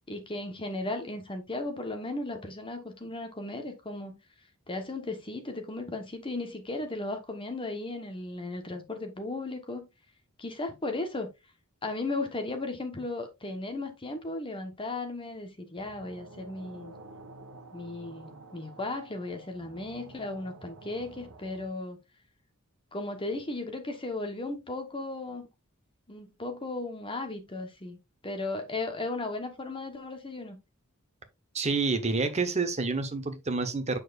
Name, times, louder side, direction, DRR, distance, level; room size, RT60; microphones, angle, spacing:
voice 1, 0.1-4.2 4.7-9.9 10.4-11.3 11.8-16.9 17.7-22.0 22.9-25.5 26.1-28.0 28.2-30.6, left 2 dB, 25° left, 1.2 m, -36 dB
sound 1, 15.8-21.7, right 3 dB, 75° right, 1.2 m, -50 dB
voice 2, 31.5-34.0, right 4 dB, 30° right, 1.1 m, -28 dB
7.5 x 6.4 x 2.5 m
head